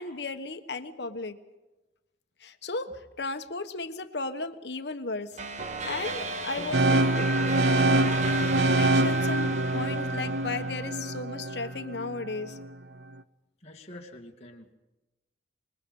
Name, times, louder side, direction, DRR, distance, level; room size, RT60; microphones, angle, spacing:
voice 1, 0.0-1.4 2.4-5.4 5.9-7.3 7.7-8.2 8.7-12.6, left 3 dB, 65° left, 8 dB, 1.2 m, -35 dB
sound 1, 5.4-10.9, right 2 dB, 40° right, 1.3 m, -35 dB
sound 2, 6.7-12.7, right 2 dB, 60° right, 0.7 m, -25 dB
voice 2, 13.6-14.7, left 1 dB, 35° left, 0 dB, 2.4 m, -46 dB
26.0 x 21.5 x 5.4 m, 1.1 s
head